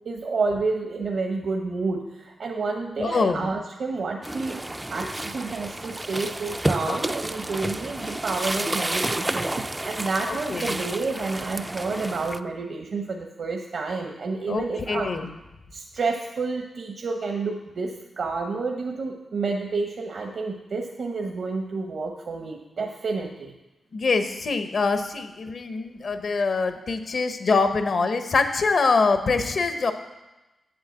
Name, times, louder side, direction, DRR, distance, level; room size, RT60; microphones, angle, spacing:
voice 1, 0.0-15.1 15.7-23.5, right 3 dB, 65° right, 2 dB, 0.9 m, -29 dB
voice 2, 3.0-3.5 10.3-10.8 14.5-15.3 23.9-29.9, left 4 dB, 60° left, 8 dB, 1.0 m, -24 dB
sound 1, 4.2-12.4, right 1 dB, 15° right, 0.3 m, -30 dB
8.0 x 7.3 x 7.9 m, 1.0 s
wide cardioid pair, 95°, 0 cm